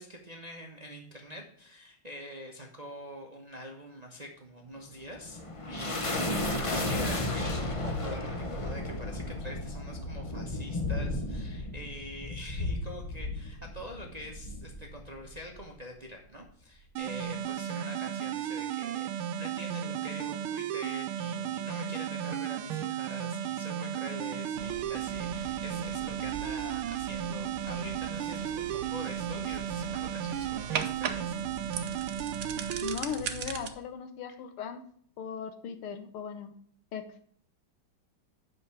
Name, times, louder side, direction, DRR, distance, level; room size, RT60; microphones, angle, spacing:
voice 1, 0.0-5.4 5.7-31.8, equal, 30° right, 1 dB, 0.8 m, -45 dB
sound 1, 4.9-15.7, left 2 dB, 55° left, 0.3 m, -34 dB
sound 2, 17.0-33.0, right 9 dB, 80° right, 1.5 m, -34 dB
sound 3, 24.5-33.7, right 7 dB, 55° right, 1.0 m, -40 dB
voice 2, 32.8-34.8 35.2-36.5 36.9-37.1, left 7 dB, 85° left, 9 dB, 1.9 m, -38 dB
8.4 x 6.0 x 4.7 m, 0.62 s
omnidirectional pair, 2.3 m